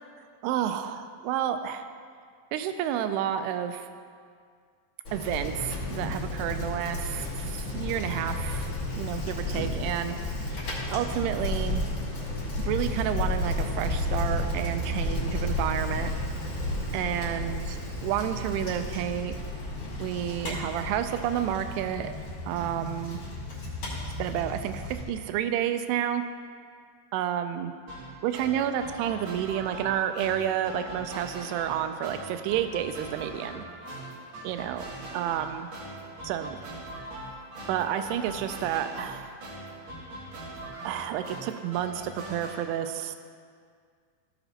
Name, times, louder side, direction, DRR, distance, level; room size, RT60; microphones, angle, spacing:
voice 1, 0.4-1.8 2.5-3.9 5.1-10.2 10.9-11.8 12.6-16.1 16.9-19.4 20.0-22.1 22.5-23.2 24.2-26.2 27.1-27.7 28.2-33.6 34.4-35.7 36.2-36.6 37.7-39.4 40.8-43.2, right 10 dB, 85° right, 9 dB, 2.6 m, -30 dB
Bicycle, 5.0-25.0, left 1 dB, 45° left, 3.1 m, -32 dB
sound 1, 27.9-42.6, right 1 dB, 55° right, 2.1 m, -41 dB
15.5 x 6.9 x 2.8 m, 2.1 s
omnidirectional pair, 4.6 m